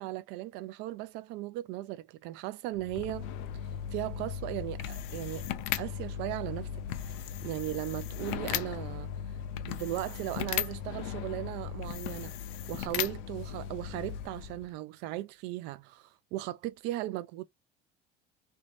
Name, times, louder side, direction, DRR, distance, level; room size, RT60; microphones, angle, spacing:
voice 1, 0.0-3.3 3.9-5.4 5.8-6.7 7.0-9.4 9.7-12.3 12.7-17.4, right 16 dB, 65° right, 0.4 m, -37 dB
sound 1, 2.7-14.7, left 10 dB, 80° left, 0.5 m, -37 dB
3.0 x 2.7 x 3.3 m
cardioid pair, 175°, 19 cm